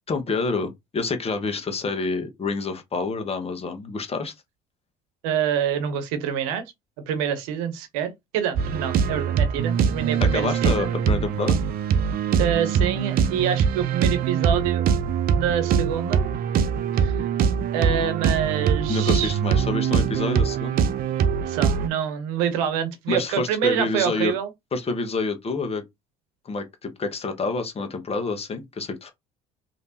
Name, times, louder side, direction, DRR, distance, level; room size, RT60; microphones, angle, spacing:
voice 1, 0.1-4.3 10.2-11.6 18.9-20.9 23.1-24.3 24.7-25.8 26.4-29.1, left 3 dB, 35° left, 1.0 m, -28 dB
voice 2, 5.2-6.6 7.1-10.9 12.4-14.8 15.3-16.2 17.0-17.3 17.7-19.3 21.4-24.5, right 9 dB, 85° right, 0.8 m, -26 dB
sound 1, 8.6-21.9, right 7 dB, 55° right, 0.6 m, -23 dB
3.3 x 2.8 x 2.8 m
supercardioid pair, 75°, 18 cm